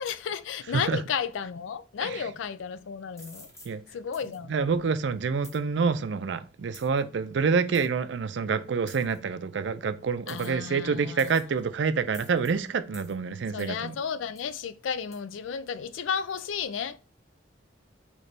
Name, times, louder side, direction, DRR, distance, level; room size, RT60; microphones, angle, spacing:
voice 1, 0.0-3.5 3.9-4.5 10.3-11.5 13.5-17.0, left 7 dB, 90° left, 0.4 m, -33 dB
sound 1, 3.2-3.7 4.1-4.4 5.4-5.6 6.7-7.0 7.7-7.9 8.9-9.2 10.3-10.7 11.2-11.6 12.1-12.5 12.9-13.1 13.6-13.8 14.4-14.5 15.1-15.2, left 1 dB, 15° left, 0.8 m, -49 dB
voice 2, 4.5-14.0, right 5 dB, 70° right, 0.4 m, -27 dB
3.3 x 3.0 x 3.9 m
head